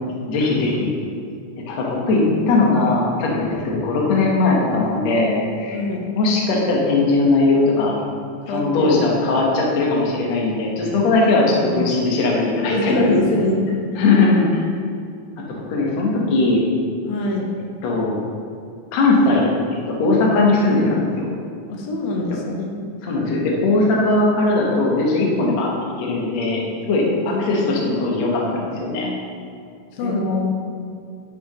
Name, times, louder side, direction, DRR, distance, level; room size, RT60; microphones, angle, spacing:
voice 1, 0.3-0.9 1.7-5.8 6.1-8.0 8.5-13.0 14.0-14.6 15.5-16.6 17.8-18.2 18.9-21.3 23.0-25.7 26.0-29.1 30.0-30.4, left 3 dB, 60° left, -3 dB, 2.3 m, -19 dB
voice 2, 5.7-6.1 8.5-8.9 11.2-11.3 11.6-11.8 12.7-13.7 17.1-17.5 21.7-22.8 27.3-27.5 29.9-30.2 30.7-30.9, left 2 dB, 85° left, 0 dB, 2.7 m, -23 dB
12.0 x 6.2 x 3.1 m, 2.3 s
omnidirectional pair, 3.9 m